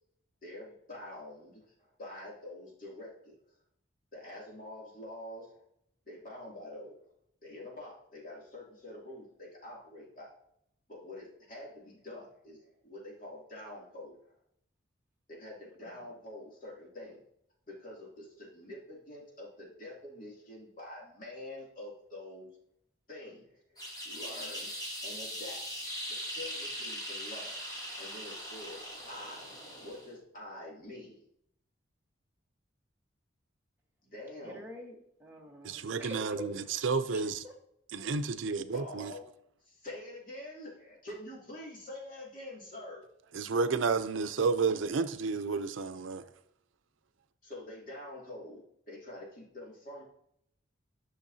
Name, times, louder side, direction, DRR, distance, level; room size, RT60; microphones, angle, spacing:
voice 1, 0.4-3.4 4.1-5.6 6.1-7.0 7.4-10.3 10.9-14.1 15.3-17.2 17.7-22.5 23.1-24.7 25.0-25.6 25.9-27.6 28.0-29.5 29.8-31.3 34.0-34.6 38.7-39.2 39.6-43.0 47.4-50.0, left 1 dB, 45° left, 2.6 m, -46 dB
sound 1, 23.8-30.1, equal, 20° left, 2.6 m, -40 dB
voice 2, 34.4-36.7 37.1-37.5, equal, 10° right, 1.2 m, -46 dB
voice 3, 35.6-37.4 37.9-39.1 43.3-46.2, right 4 dB, 90° right, 0.5 m, -31 dB
10.0 x 6.2 x 2.7 m
head